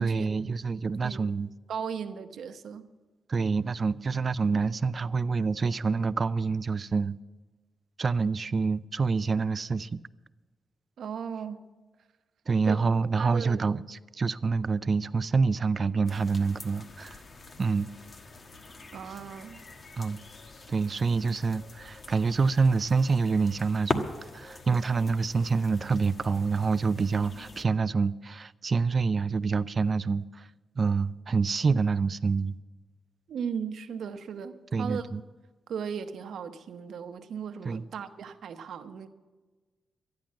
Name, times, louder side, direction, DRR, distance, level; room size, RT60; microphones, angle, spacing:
voice 1, 0.0-1.5 3.3-7.2 8.0-10.0 12.5-17.2 17.6-17.9 20.0-20.2 20.7-24.0 24.3-30.5 30.8-32.6 34.7-35.2 37.6-37.8, right 4 dB, 45° right, 0.4 m, -27 dB
voice 2, 1.7-2.8 11.0-11.6 12.6-12.8 13.2-13.7 18.9-19.6 33.3-35.0 35.7-39.1, right 7 dB, 80° right, 0.8 m, -36 dB
sound 1, 16.1-27.6, left 3 dB, 45° left, 1.3 m, -41 dB
13.0 x 10.5 x 7.4 m
cardioid pair, 90°, 0 cm